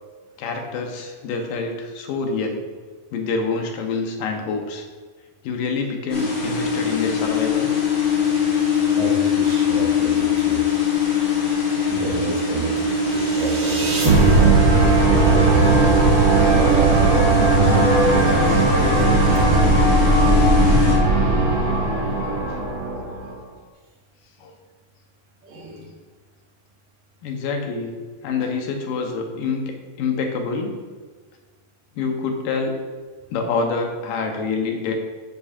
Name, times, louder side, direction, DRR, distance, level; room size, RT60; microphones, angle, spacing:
voice 1, 0.4-2.6 3.1-4.8 5.4-7.7 24.4-24.5 27.2-27.9 28.2-29.6 30.0-30.7 32.0-32.7 33.3-34.9, left 4 dB, 80° left, 3 dB, 2.6 m, -26 dB
sound 1, 6.1-21.0, left 3 dB, 60° left, 3.5 m, -22 dB
voice 2, 9.0-10.7 11.2-11.4 11.9-15.5 16.4-18.6 19.5-19.6 20.7-21.8 23.2-23.4 25.4-25.9, right 2 dB, 85° right, -3 dB, 3.3 m, -31 dB
sound 2, 13.1-23.3, right 2 dB, 50° right, 1.1 m, -17 dB
11.5 x 7.0 x 2.5 m, 1.5 s
omnidirectional pair, 3.9 m